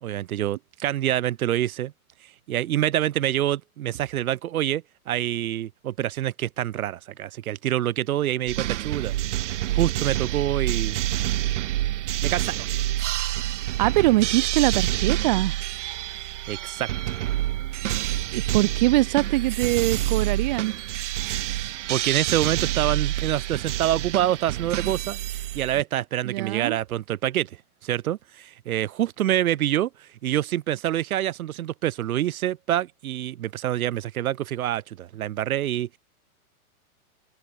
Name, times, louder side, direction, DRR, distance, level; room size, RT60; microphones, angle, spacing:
voice 1, 0.0-1.9 2.2-9.1 9.7-11.0 12.2-12.8 16.2-17.2 21.4-27.6 27.8-36.0, right 12 dB, 70° right, 1.2 m, -26 dB
sound 1, 8.5-25.8, right 14 dB, 50° right, 2.6 m, -27 dB
voice 2, 13.8-15.5 18.3-20.7 26.2-26.8, right 18 dB, 30° right, 0.8 m, -22 dB
hypercardioid pair, 165°, 44 cm